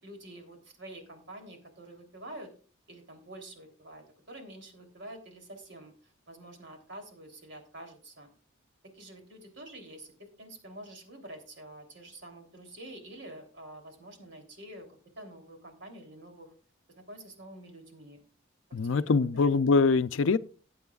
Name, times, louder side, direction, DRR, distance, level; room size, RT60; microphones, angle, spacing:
voice 1, 0.0-2.5 2.9-8.3 8.8-14.9 15.2-16.5 16.9-18.2 18.8-19.0 19.4-19.5, right 1 dB, 60° right, 3.2 m, -47 dB
voice 2, 18.7-20.4, left 4 dB, 70° left, 0.5 m, -23 dB
19.0 x 8.5 x 2.4 m
head